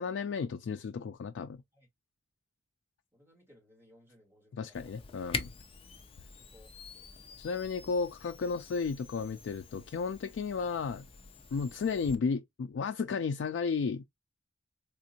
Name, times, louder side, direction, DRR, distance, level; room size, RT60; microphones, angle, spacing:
voice 1, 0.0-1.6 4.5-5.5 7.4-11.1 11.5-14.0, left 5 dB, 85° left, 0.3 m, -33 dB
voice 2, 3.1-5.0 6.3-7.5, left 1 dB, 15° right, 1.6 m, -63 dB
Camera, 4.7-12.2, left 4 dB, 30° left, 0.5 m, -45 dB
3.6 x 2.5 x 2.7 m
head